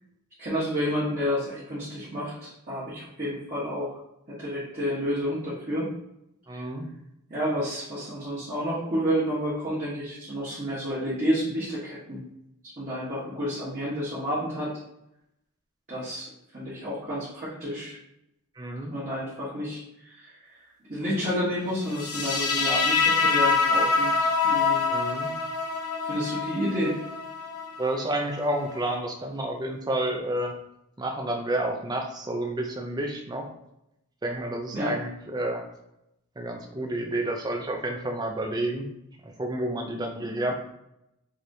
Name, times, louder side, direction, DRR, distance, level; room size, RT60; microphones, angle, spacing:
voice 1, 0.4-4.0 4.3-5.9 6.5-6.6 7.3-12.2 12.8-14.7 15.9-18.0 18.9-24.8 26.1-27.0 34.7-35.0, equal, 35° right, -9 dB, 1.1 m, -30 dB
voice 2, 6.5-6.9 18.6-18.9 24.9-25.3 27.8-30.5 31.0-33.5 34.2-35.6 36.4-38.9 39.2-40.5, right 1 dB, 20° right, 3 dB, 0.5 m, -30 dB
sound 1, 21.9-29.0, left 4 dB, 80° left, 1.0 m, -26 dB
4.8 x 2.8 x 2.7 m, 0.84 s
head